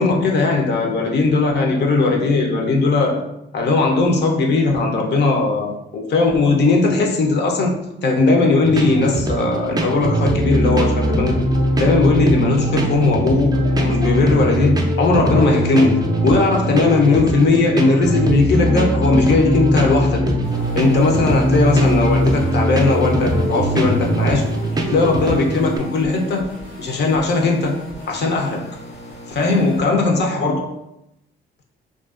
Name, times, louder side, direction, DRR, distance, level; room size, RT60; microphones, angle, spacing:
voice 1, 0.0-3.2 3.5-11.5 11.8-20.3 20.7-24.5 24.9-27.8 28.1-28.7 29.3-30.7, left 3 dB, 60° left, 1 dB, 0.6 m, -18 dB
sound 1, 8.6-25.8, equal, 20° right, 0.4 m, -20 dB
sound 2, 20.4-29.8, left 1 dB, 85° left, 0.9 m, -38 dB
2.4 x 2.2 x 2.3 m, 0.83 s
cardioid pair, 90°, 20 cm